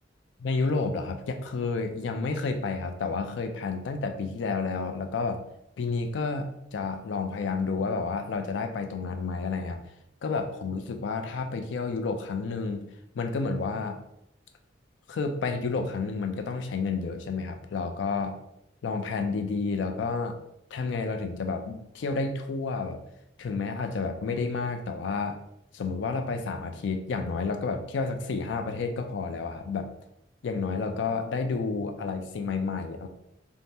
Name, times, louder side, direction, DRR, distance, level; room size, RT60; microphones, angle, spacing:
voice 1, 0.4-5.4 5.8-9.8 10.2-12.8 13.1-14.0 15.1-18.4 18.8-20.4 20.7-23.0 23.4-25.4 25.7-29.9 30.4-33.1, left 4 dB, 75° left, 6 dB, 0.4 m, -30 dB
2.7 x 2.0 x 3.3 m, 0.78 s
head